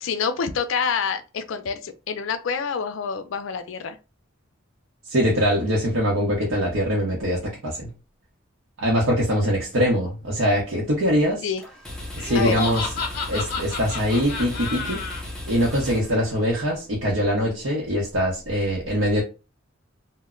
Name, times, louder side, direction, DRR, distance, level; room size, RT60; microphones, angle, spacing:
voice 1, 0.0-4.0 11.4-11.6 12.3-12.6, left 6 dB, 70° left, 0.4 m, -27 dB
voice 2, 5.1-7.9 8.8-11.5 12.2-12.9 13.3-15.0 15.5-19.2, equal, 90° right, 0.8 m, -23 dB
sound 1, 11.6-16.8, left 1 dB, 5° left, 0.6 m, -36 dB
Laughter, 12.2-15.2, left 4 dB, 50° left, 0.8 m, -30 dB
2.1 x 2.1 x 3.6 m
head